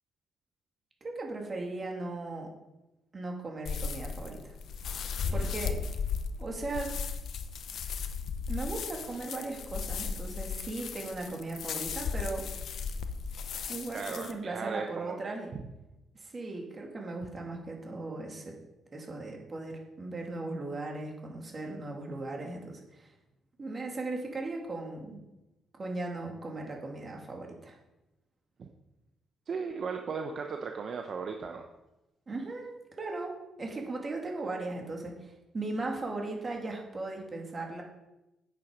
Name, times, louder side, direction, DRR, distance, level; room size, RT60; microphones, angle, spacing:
voice 1, 1.0-2.5 3.1-4.5 5.3-5.8 6.4-7.0 8.5-12.5 13.7-15.5 16.1-18.6 18.9-23.1 23.6-25.2 25.7-27.8 32.3-37.8, right 2 dB, 35° right, 1 dB, 2.9 m, -37 dB
sound 1, 3.7-14.3, left 6 dB, 65° left, 0.9 m, -36 dB
voice 2, 13.9-15.3 28.6-28.7 29.5-31.6, right 5 dB, 50° right, 4 dB, 0.9 m, -37 dB
8.9 x 8.5 x 5.3 m, 0.96 s
cardioid pair, 90°, 0 cm